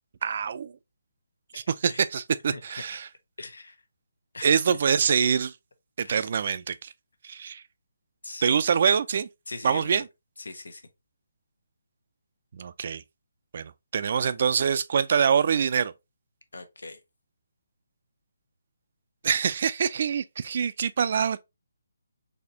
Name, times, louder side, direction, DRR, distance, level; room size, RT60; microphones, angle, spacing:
voice 1, 0.2-0.7 1.5-3.1 4.4-5.5 6.0-6.9 7.2-7.6 8.4-9.3 9.6-10.0 12.5-13.0 13.5-15.9 19.2-21.4, right 7 dB, 45° right, 0.4 m, -25 dB
voice 2, 2.5-3.0 3.4-3.8 4.3-4.6 6.0-6.3 8.2-8.6 9.5-10.0 10.4-10.8 16.5-17.0, left 3 dB, 85° left, 0.9 m, -40 dB
4.1 x 2.8 x 2.7 m
hypercardioid pair, 160°, 0 cm